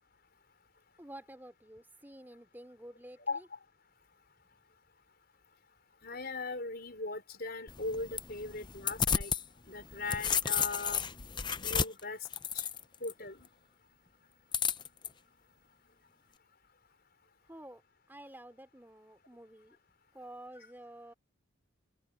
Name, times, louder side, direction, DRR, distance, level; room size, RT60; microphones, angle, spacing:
voice 1, 1.0-3.5 4.5-4.6 17.4-17.8 18.1-19.8 20.1-21.1, right 1 dB, 10° right, 3.2 m, -50 dB
voice 2, 3.3-3.6 6.0-9.3 9.7-11.0 11.6-12.3 12.5-12.7 13.0-13.5, left 3 dB, 50° left, 5.3 m, -39 dB
sound 1, 7.7-9.4 9.8-13.1 14.5-15.1, left 7 dB, 20° left, 0.6 m, -32 dB
open air
head